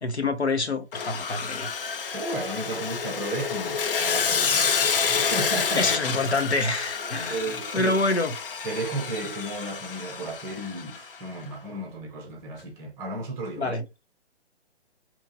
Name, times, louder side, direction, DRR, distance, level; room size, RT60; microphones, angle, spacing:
voice 1, 0.0-1.7 5.8-8.3 13.6-13.8, left 2 dB, 80° left, 0.9 m, -26 dB
Sawing, 0.9-11.2, left 6 dB, 55° left, 0.6 m, -28 dB
voice 2, 2.1-5.8 7.3-8.0 8.6-13.8, right 2 dB, 10° right, 0.5 m, -34 dB
5.5 x 3.0 x 2.7 m
figure-of-eight pair, 130°, 33 cm